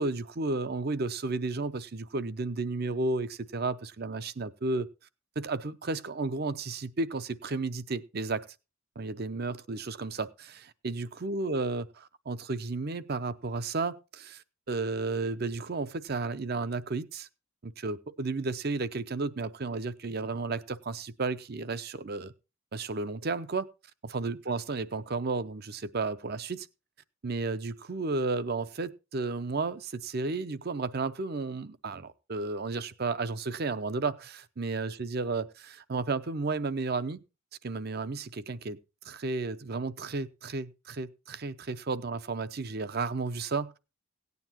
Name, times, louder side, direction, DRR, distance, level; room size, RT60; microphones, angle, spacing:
voice 1, 0.0-4.9 5.4-8.5 9.0-17.3 17.6-22.3 22.7-23.7 24.0-26.7 27.2-37.2 37.6-43.8, right 3 dB, 45° right, 0.6 m, -33 dB
17.5 x 9.4 x 2.9 m
head